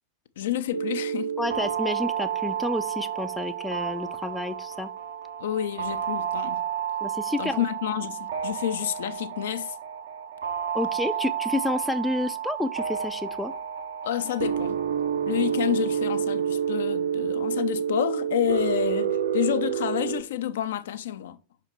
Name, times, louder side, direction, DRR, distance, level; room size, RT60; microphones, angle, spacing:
voice 1, 0.4-1.3 5.4-6.6 7.4-9.8 14.0-14.8 15.3-21.4, left 11 dB, 60° left, 0.6 m, -29 dB
sound 1, 0.7-20.2, right 8 dB, 65° right, 0.9 m, -29 dB
voice 2, 1.4-4.9 7.0-7.6 10.7-13.5, left 2 dB, 5° left, 0.5 m, -30 dB
5.7 x 5.0 x 4.4 m
figure-of-eight pair, 90°, 0 cm